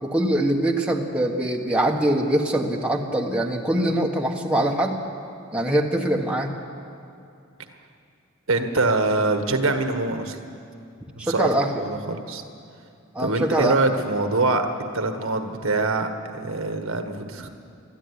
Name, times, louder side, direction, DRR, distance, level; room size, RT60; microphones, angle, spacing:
voice 1, 0.0-5.0 5.5-6.5 11.2-11.8 13.1-13.7, right 1 dB, 5° right, -1 dB, 1.5 m, -23 dB
voice 2, 8.5-10.4 11.2-11.5 11.8-12.4 13.2-14.7 14.9-16.1 16.3-17.5, right 3 dB, 65° right, 6 dB, 1.5 m, -24 dB
22.0 x 13.5 x 9.8 m, 2.5 s
head